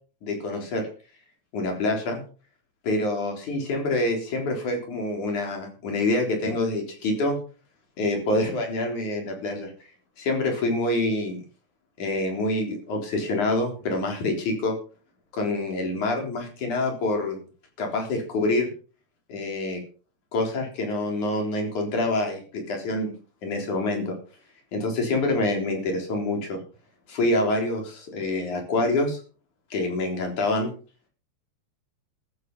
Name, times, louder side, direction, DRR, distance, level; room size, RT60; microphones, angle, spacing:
voice 1, 0.2-0.9 1.5-2.2 2.8-7.4 8.0-9.7 10.2-11.4 12.0-14.8 15.3-17.4 17.8-18.7 19.3-19.8 20.3-23.1 23.4-24.2 24.7-26.6 27.1-29.2 29.7-30.7, left 2 dB, 80° left, 2 dB, 5.2 m, -26 dB
13.5 x 11.0 x 5.5 m, 0.39 s
omnidirectional pair, 3.4 m